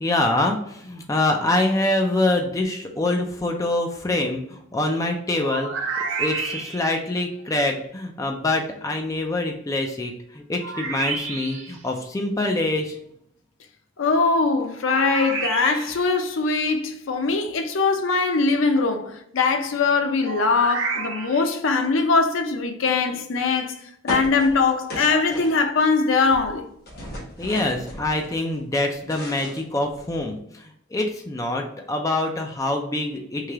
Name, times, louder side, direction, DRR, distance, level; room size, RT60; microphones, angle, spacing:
voice 1, 0.0-5.7 6.2-13.0 27.4-33.5, left 2 dB, 15° left, 0.4 m, -25 dB
sound 1, 5.4-7.1 10.6-11.8 14.9-16.1 20.2-21.6, right 4 dB, 75° right, 1.1 m, -30 dB
voice 2, 14.0-23.8 24.0-26.6, left 4 dB, 75° left, 0.5 m, -21 dB
sound 2, 24.1-26.0 26.2-28.4 28.8-30.3, equal, 50° left, 1.0 m, -36 dB
3.2 x 2.8 x 3.4 m
head